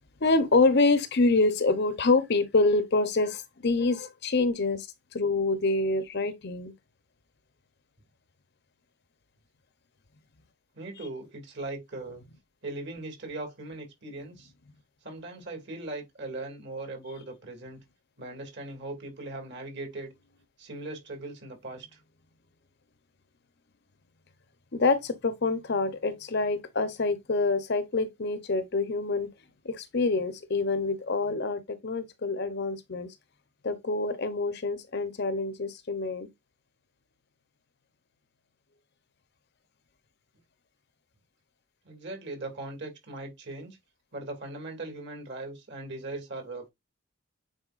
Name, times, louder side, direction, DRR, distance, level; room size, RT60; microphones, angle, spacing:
voice 1, 0.2-4.9 5.1-6.7 24.7-29.3 29.6-33.1 33.6-36.3, left 3 dB, 50° left, 0.8 m, -26 dB
voice 2, 10.7-12.2 12.6-14.5 15.0-17.8 18.2-20.1 20.6-22.0 41.8-43.8 44.1-46.7, right 2 dB, 55° right, 2.5 m, -39 dB
9.1 x 4.4 x 2.5 m
head